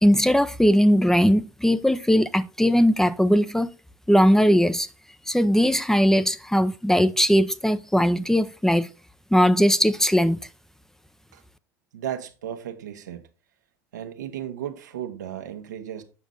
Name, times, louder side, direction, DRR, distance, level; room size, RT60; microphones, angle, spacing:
voice 1, 0.0-3.7 4.1-4.9 5.3-8.9 9.3-10.4, equal, 5° left, 0.6 m, -19 dB
voice 2, 11.9-13.2 13.9-16.0, right 10 dB, 90° right, 1.2 m, -34 dB
8.2 x 6.1 x 3.8 m
hypercardioid pair, 75°, 9 cm